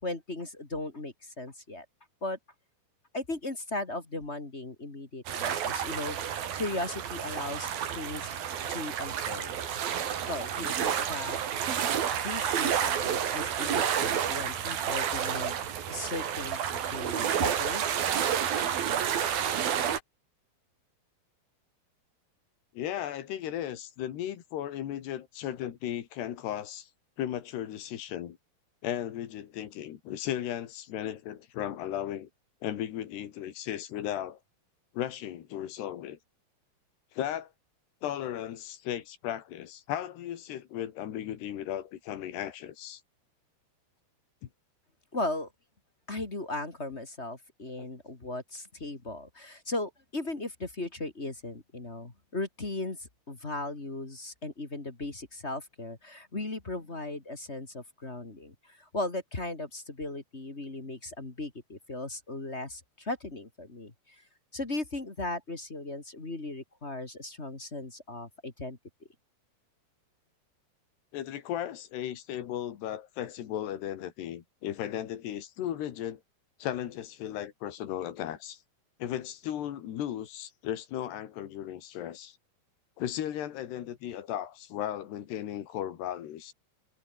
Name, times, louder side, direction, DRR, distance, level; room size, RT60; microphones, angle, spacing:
voice 1, 0.0-1.9 2.2-2.4 3.1-8.3 8.7-9.5 10.3-11.4 12.1-15.6 15.9-17.8 45.1-45.5 46.1-64.2 64.5-68.8, left 2 dB, 20° left, 2.1 m, -37 dB
sound 1, 5.3-20.0, right 9 dB, 65° right, 4.2 m, -30 dB
voice 2, 22.7-26.9 27.2-28.4 28.8-32.3 32.6-34.4 34.9-36.2 37.1-37.5 38.0-43.0 46.9-47.0 71.1-76.2 76.6-78.6 79.0-82.4 83.0-86.5, left 11 dB, 80° left, 4.1 m, -36 dB
omnidirectional pair, 4.8 m